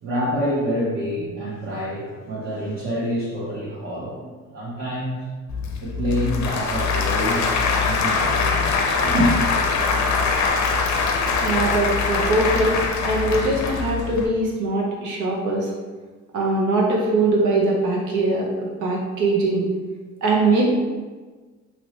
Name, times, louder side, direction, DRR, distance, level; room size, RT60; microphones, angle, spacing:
voice 1, 0.0-5.2 5.8-8.7 9.0-9.3, equal, 45° right, -7 dB, 0.9 m, -27 dB
Applause / Crowd, 5.5-14.3, left 4 dB, 70° left, 0.5 m, -22 dB
voice 2, 11.4-15.7 16.3-19.7 20.2-20.7, right 2 dB, 85° right, -2 dB, 0.7 m, -21 dB
2.9 x 2.7 x 3.1 m, 1.3 s
cardioid pair, 90°, 30 cm